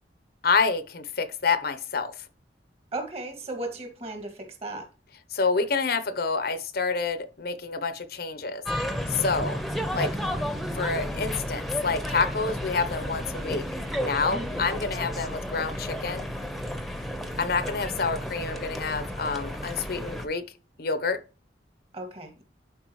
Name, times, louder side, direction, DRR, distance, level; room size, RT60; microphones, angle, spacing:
voice 1, 0.4-2.1 5.3-8.6 9.1-9.6 9.9-10.1 10.7-13.6 14.0-16.3 17.4-20.4 20.8-21.2, left 4 dB, 55° left, 0.8 m, -28 dB
voice 2, 2.9-4.9 14.3-14.5 21.9-22.4, right 2 dB, 35° right, 2.1 m, -36 dB
sound 1, 8.7-20.3, equal, ahead, 1.0 m, -32 dB
11.5 x 4.8 x 3.1 m
head